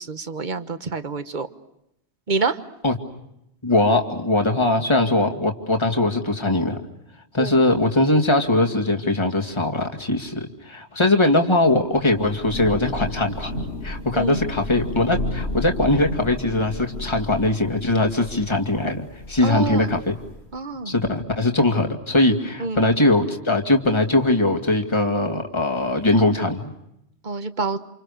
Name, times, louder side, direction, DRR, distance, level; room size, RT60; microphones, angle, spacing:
voice 1, 0.0-1.5 2.3-2.6 7.4-7.6 14.1-14.4 19.4-20.0 20.5-21.0 22.6-22.9 27.2-27.8, right 4 dB, 45° right, 10 dB, 1.4 m, -27 dB
voice 2, 3.6-6.8 7.3-13.5 13.8-20.1 20.9-26.7, left 2 dB, 25° left, 3 dB, 2.3 m, -21 dB
Thunder / Rain, 12.0-20.5, left 1 dB, 85° left, 3.3 m, -33 dB
29.5 x 28.0 x 6.7 m, 0.81 s
omnidirectional pair, 1.1 m